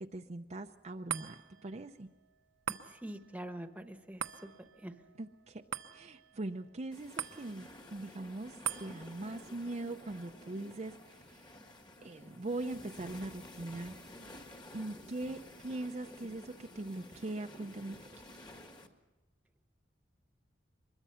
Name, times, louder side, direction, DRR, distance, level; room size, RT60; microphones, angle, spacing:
voice 1, 0.0-2.1 5.2-5.6 5.9-11.5 12.0-13.9 14.7-18.0, right 2 dB, 35° right, 5 dB, 0.6 m, -41 dB
sound 1, 1.1-13.7 14.1-14.2, right 8 dB, 75° right, 0.9 m, -46 dB
voice 2, 2.7-4.5 4.8-4.9, right 1 dB, 10° right, 7 dB, 1.2 m, -45 dB
sound 2, 6.9-18.9, left 1 dB, 25° left, 1.7 m, -52 dB
24.0 x 21.5 x 5.7 m, 1.2 s
head